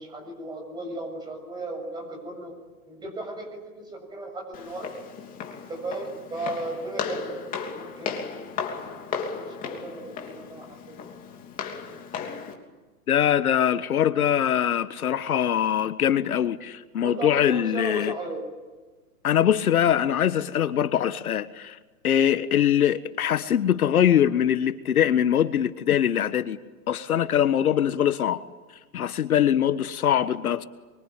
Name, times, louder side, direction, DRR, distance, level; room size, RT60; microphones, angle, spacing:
voice 1, 0.0-2.5 2.9-4.9 5.7-9.0 9.4-11.0 17.0-18.4, right 2 dB, 10° right, 7.2 m, -36 dB
Walk footsteps, 4.5-12.5, left 6 dB, 20° left, 3.1 m, -35 dB
voice 2, 13.1-18.1 19.2-21.8 22.0-26.6 26.9-28.4 28.9-30.6, left 10 dB, 70° left, 1.5 m, -22 dB
26.5 x 24.5 x 9.1 m
hypercardioid pair, 155°, 44 cm